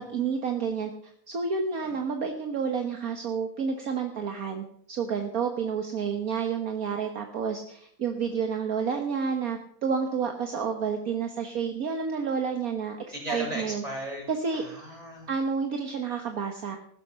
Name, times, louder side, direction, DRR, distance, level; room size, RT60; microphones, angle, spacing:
voice 1, 0.0-13.8 14.3-14.6 15.3-16.8, right 6 dB, 65° right, 5 dB, 1.7 m, -30 dB
voice 2, 13.1-14.2 14.5-15.3, right 1 dB, 20° right, -2 dB, 6.7 m, -36 dB
15.5 x 13.5 x 5.8 m, 0.63 s
omnidirectional pair, 1.7 m